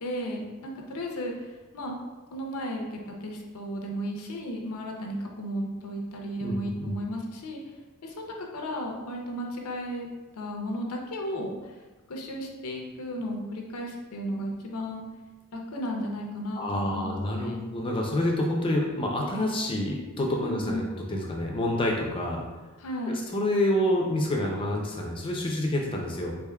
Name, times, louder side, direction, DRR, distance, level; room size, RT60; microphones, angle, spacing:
voice 1, 0.0-1.9 2.3-7.6 8.0-10.1 10.3-11.8 12.1-15.0 15.5-17.6 20.4-20.9 22.8-23.2, equal, 80° left, 1 dB, 0.6 m, -34 dB
voice 2, 16.6-22.4 23.3-26.4, left 1 dB, 25° left, 0 dB, 0.4 m, -28 dB
3.5 x 3.4 x 2.2 m, 1.2 s
head